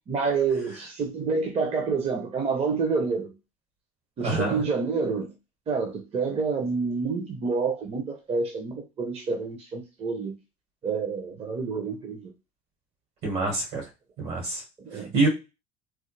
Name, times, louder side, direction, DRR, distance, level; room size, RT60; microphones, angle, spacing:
voice 1, 0.1-3.3 4.2-5.3 5.7-10.3 10.8-12.3 14.8-15.1, right 4 dB, 35° right, 0.7 m, -28 dB
voice 2, 4.2-4.6 13.2-13.9 14.2-14.6 15.1-15.3, right 3 dB, 70° right, 1.9 m, -26 dB
3.1 x 2.0 x 3.2 m
supercardioid pair, 80°, 17 cm